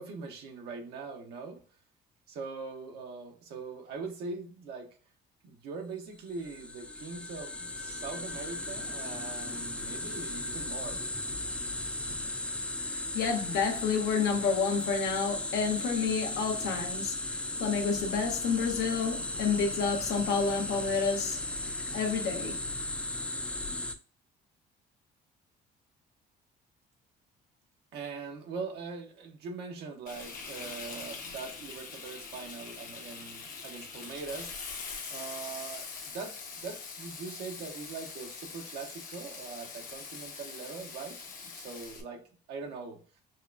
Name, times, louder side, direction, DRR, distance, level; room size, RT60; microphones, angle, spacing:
voice 1, 0.0-1.6 2.3-4.9 5.4-11.0 27.9-34.5 35.1-41.2 41.4-42.2 42.5-43.0, right 4 dB, 75° right, 0.9 m, -42 dB
sound 1, 6.2-23.9, left 2 dB, 5° left, 0.4 m, -36 dB
voice 2, 12.8-22.6, left 5 dB, 80° left, 1.1 m, -30 dB
Frying (food), 30.1-42.0, left 5 dB, 55° left, 0.9 m, -43 dB
5.3 x 2.3 x 2.5 m
cardioid pair, 110°, 17 cm